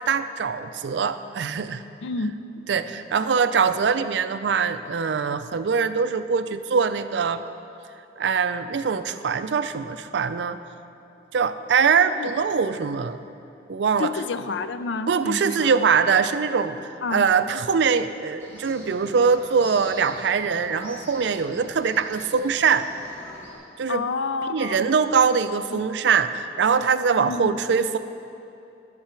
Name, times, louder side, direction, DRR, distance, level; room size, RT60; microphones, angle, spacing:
voice 1, 0.1-1.8 2.7-7.4 8.2-10.6 11.3-13.2 13.7-14.1 15.1-16.8 17.1-22.9 23.8-24.0 24.5-28.0, right 6 dB, 75° right, 11 dB, 0.4 m, -22 dB
voice 2, 2.0-2.4 12.2-12.3 14.0-15.7 17.0-17.3 23.9-24.8 25.7-25.8 27.2-27.6, left 4 dB, 90° left, 11 dB, 0.5 m, -29 dB
sound 1, 18.4-23.5, equal, 15° left, 2.0 m, -43 dB
10.5 x 10.5 x 4.4 m, 2.7 s
head